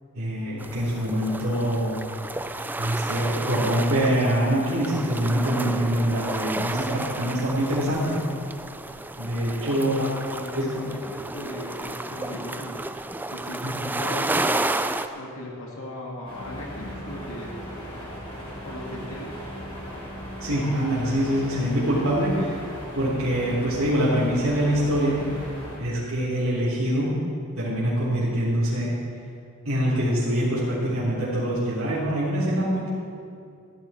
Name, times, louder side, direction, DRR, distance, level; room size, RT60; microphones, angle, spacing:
voice 1, 0.2-2.0 2.8-8.2 9.2-10.1 10.5-10.7 13.6-13.9 20.4-22.6 23.0-25.2 25.8-27.2 27.6-29.0 29.7-32.9, equal, 70° right, -12 dB, 3.7 m, -24 dB
sound 1, 0.6-15.1, right 2 dB, 10° right, 0.3 m, -31 dB
voice 2, 10.0-12.8 13.3-14.7 15.1-17.5 18.6-19.3 26.2-26.5, left 1 dB, 75° left, -2 dB, 2.1 m, -37 dB
sound 2, 16.2-25.8, equal, 25° left, 4.0 m, -37 dB
15.0 x 14.0 x 4.4 m, 2.4 s
head